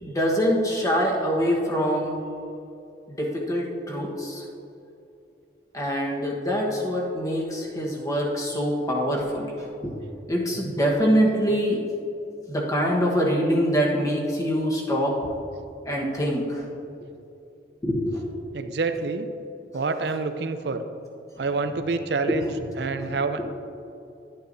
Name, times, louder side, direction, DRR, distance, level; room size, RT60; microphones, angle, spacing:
voice 1, 0.0-2.2 3.1-4.4 5.7-9.9 10.3-11.8 12.5-15.2 15.8-16.7 17.8-18.2 22.3-22.4 22.9-23.4, equal, 20° left, -2 dB, 1.2 m, -24 dB
voice 2, 18.5-19.3 19.7-20.8 21.4-23.4, right 4 dB, 70° right, 8 dB, 0.6 m, -27 dB
11.0 x 8.9 x 2.7 m, 2.7 s
head